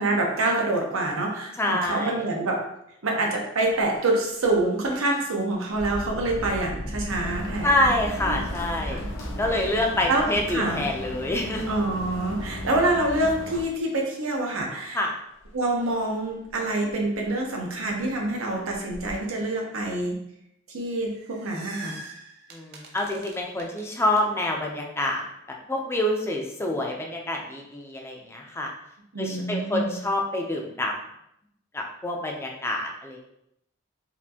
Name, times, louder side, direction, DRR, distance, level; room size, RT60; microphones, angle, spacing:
voice 1, 0.0-2.6 3.0-7.7 8.9-9.1 9.6-9.7 10.1-10.9 11.7-15.0 15.5-20.2 20.7-22.0 29.1-30.0, right 2 dB, 85° right, 0 dB, 0.8 m, -26 dB
voice 2, 1.6-2.2 7.6-9.0 9.4-11.7 14.9-15.1 22.5-25.2 25.7-28.7 29.2-30.9 31.7-33.2, left 1 dB, 10° left, 0 dB, 0.5 m, -27 dB
Engine, 3.6-3.8 4.3-4.5 5.7-11.5 12.3-12.5 12.9-13.6 15.4-15.5 15.9-16.0 16.5-16.6 16.9-17.4 18.0-18.1 18.7-19.1, equal, 60° left, 0.6 m, -37 dB
sound 1, 7.1-13.6, equal, 80° left, 0.9 m, -36 dB
sound 2, 20.9-24.2, right 3 dB, 50° right, 0.5 m, -44 dB
4.2 x 2.6 x 2.8 m, 0.79 s
head